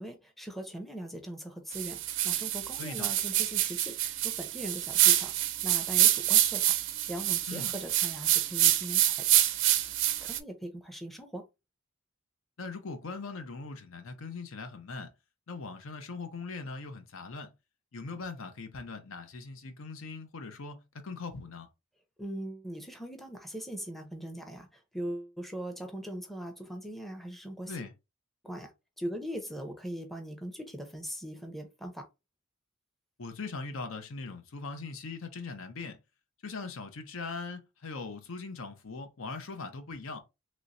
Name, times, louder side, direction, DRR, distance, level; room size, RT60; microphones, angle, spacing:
voice 1, 0.0-5.3 5.6-6.7 7.1-9.1 10.2-11.4 22.2-27.7 28.4-28.7 29.0-32.0, right 1 dB, ahead, 0.6 m, -40 dB
sound 1, 1.7-10.4, right 13 dB, 60° right, 0.4 m, -27 dB
voice 2, 2.8-3.1 7.5-7.7 12.6-15.1 15.5-17.5 17.9-21.7 27.7-27.9 33.2-36.0 36.4-40.2, left 4 dB, 70° left, 0.7 m, -40 dB
3.1 x 3.0 x 2.6 m
head